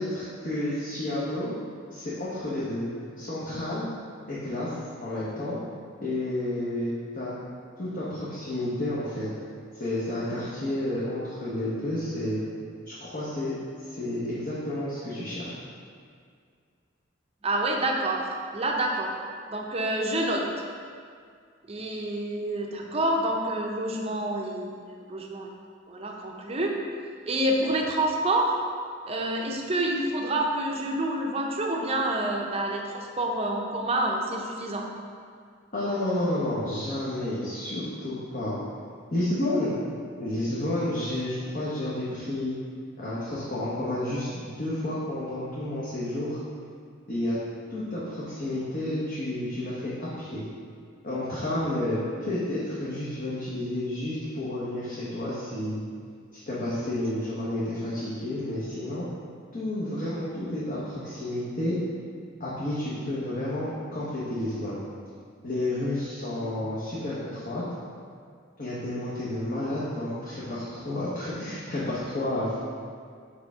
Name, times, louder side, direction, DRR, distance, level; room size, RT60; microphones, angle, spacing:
voice 1, 0.0-1.6 1.9-2.9 3.2-3.9 4.3-4.7 5.0-5.6 6.0-7.3 7.8-9.3 9.8-12.4 12.9-13.5 13.8-15.6 35.7-38.6 39.1-39.7 40.2-42.5 43.0-46.4 47.1-47.4 47.7-50.5 51.0-55.8 56.3-59.1 59.5-61.8 62.4-64.8 65.4-67.6 68.6-72.6, left 1 dB, 45° left, -9 dB, 1.1 m, -30 dB
voice 2, 17.4-19.1 19.5-20.5 21.7-25.5 25.9-26.8 27.3-28.6 29.1-34.9, right 1 dB, 30° right, 0 dB, 0.6 m, -28 dB
6.4 x 5.0 x 3.6 m, 2.1 s
head